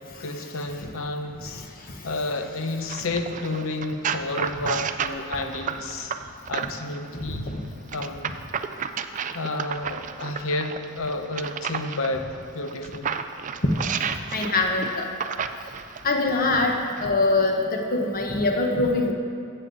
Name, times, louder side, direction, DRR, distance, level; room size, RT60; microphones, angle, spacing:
voice 1, 0.2-6.1 6.5-7.5 7.9-8.3 9.3-13.1, left 2 dB, 65° left, 6 dB, 0.8 m, -31 dB
sound 1, 2.9-7.0 7.9-12.1 12.7-16.1 16.9-17.0, right 7 dB, 35° right, 0.4 m, -31 dB
voice 2, 7.1-7.6 14.3-15.1 16.0-16.7 17.0-19.1, left 2 dB, 40° left, 2 dB, 1.1 m, -23 dB
15.5 x 7.8 x 4.0 m, 2.4 s
head